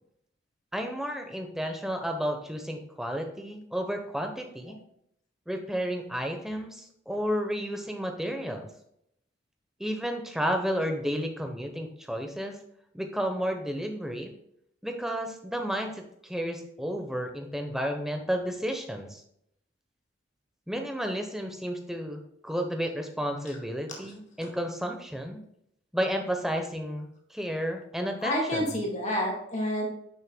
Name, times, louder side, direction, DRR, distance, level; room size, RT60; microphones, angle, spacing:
voice 1, 0.7-4.8 5.5-8.7 9.8-12.6 12.9-14.3 14.8-19.2 20.7-25.4 25.9-28.8, equal, ahead, 4 dB, 0.9 m, -32 dB
voice 2, 28.2-29.9, left 1 dB, 35° left, -1 dB, 1.9 m, -28 dB
9.3 x 6.4 x 2.3 m, 0.73 s
head